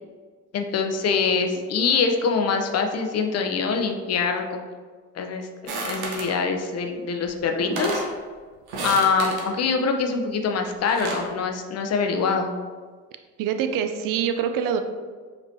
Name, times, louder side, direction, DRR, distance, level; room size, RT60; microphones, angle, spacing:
voice 1, 0.5-4.6 5.2-8.0 8.8-12.5, left 5 dB, 40° left, 4 dB, 0.6 m, -24 dB
sound 1, 5.7-6.4 7.3-7.4 7.6-8.1 8.7-9.5 10.7-11.3, right 2 dB, 70° right, 1.0 m, -31 dB
voice 2, 13.4-14.8, right 8 dB, 55° right, 7 dB, 0.5 m, -25 dB
5.1 x 3.1 x 2.7 m, 1.5 s
hypercardioid pair, 55°, 42 cm